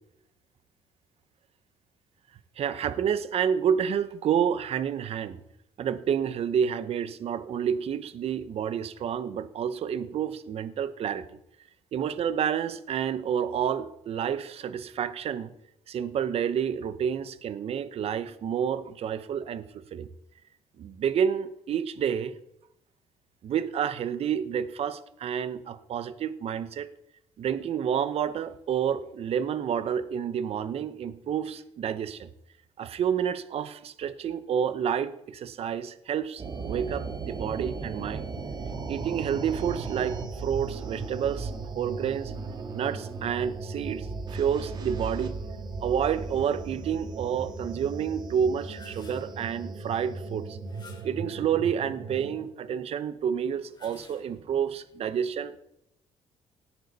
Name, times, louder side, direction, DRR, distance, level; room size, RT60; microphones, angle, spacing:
voice 1, 2.6-5.4 5.8-11.3 11.9-15.5 15.9-20.1 20.8-22.3 23.4-26.9 27.4-32.3 32.8-38.2 38.9-42.3 42.7-45.4 45.8-50.6 51.0-55.6, right 8 dB, 55° right, 13 dB, 0.9 m, -29 dB
sound 1, 36.4-52.4, right 4 dB, 35° right, 2.0 m, -37 dB
sound 2, 48.4-49.4 50.6-51.3 53.5-54.6, left 4 dB, 35° left, 2.8 m, -53 dB
17.5 x 9.1 x 4.1 m, 0.79 s
cardioid pair, 100°, 12 cm